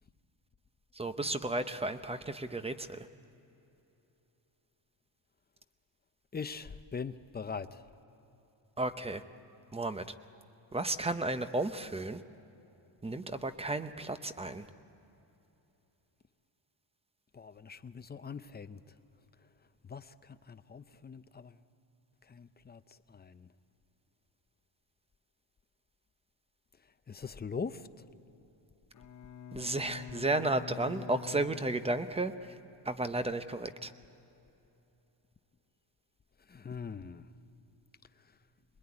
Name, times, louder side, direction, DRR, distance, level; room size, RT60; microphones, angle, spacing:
voice 1, 1.0-3.1 8.8-9.2 9.7-10.0 10.7-12.2 13.0-14.7 29.5-32.3 32.8-33.9, right 2 dB, 15° right, 10 dB, 0.8 m, -33 dB
voice 2, 6.3-7.8 17.3-18.8 19.9-21.6 22.3-22.8 23.1-23.5 27.1-27.9 36.5-37.2, left 5 dB, 20° left, 11 dB, 0.6 m, -42 dB
Bowed string instrument, 28.9-32.5, left 8 dB, 40° left, 1.0 m, -46 dB
26.5 x 20.5 x 9.7 m, 3.0 s
cardioid pair, 140°, 46 cm